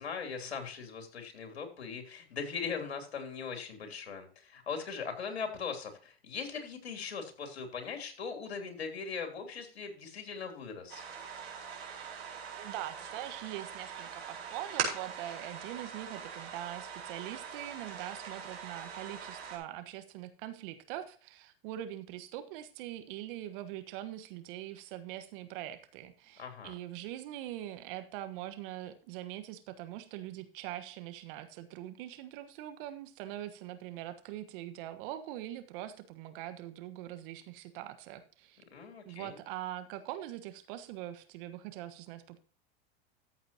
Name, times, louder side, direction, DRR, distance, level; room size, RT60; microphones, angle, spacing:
voice 1, 0.0-11.0 26.4-26.7 38.7-39.4, left 5 dB, 85° left, 5 dB, 3.2 m, -40 dB
sound 1, 10.9-19.6, right 6 dB, 75° right, 4.2 m, -41 dB
voice 2, 12.6-38.6 39.0-42.4, right 13 dB, 60° right, 10 dB, 1.4 m, -43 dB
14.0 x 8.1 x 2.8 m, 0.40 s
hypercardioid pair, 100°, 31 cm